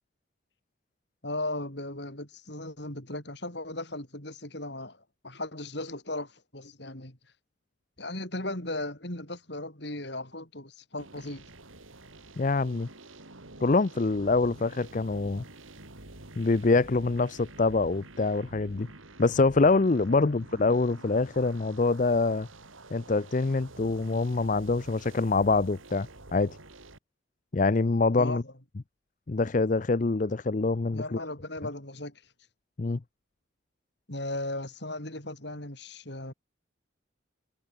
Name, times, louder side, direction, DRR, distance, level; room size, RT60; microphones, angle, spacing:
voice 1, 1.2-7.2 8.0-11.5 20.1-20.3 28.2-28.5 30.9-32.2 34.1-36.3, left 2 dB, 55° left, 5.0 m, -37 dB
sound 1, 11.0-27.0, right 2 dB, 85° right, 4.9 m, -48 dB
voice 2, 12.4-12.9 13.6-15.4 16.4-18.9 19.2-22.5 22.9-26.6 27.5-28.4 29.3-31.2 32.8-33.0, left 3 dB, 40° left, 0.5 m, -25 dB
head